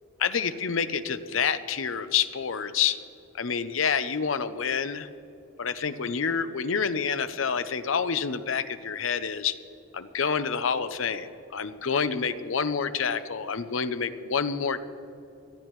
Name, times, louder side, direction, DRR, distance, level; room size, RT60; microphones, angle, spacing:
voice 1, 0.2-3.0 3.4-5.1 5.6-9.6 9.9-14.8, left 6 dB, 75° left, 11 dB, 0.7 m, -28 dB
22.0 x 13.5 x 3.2 m, 2.8 s
head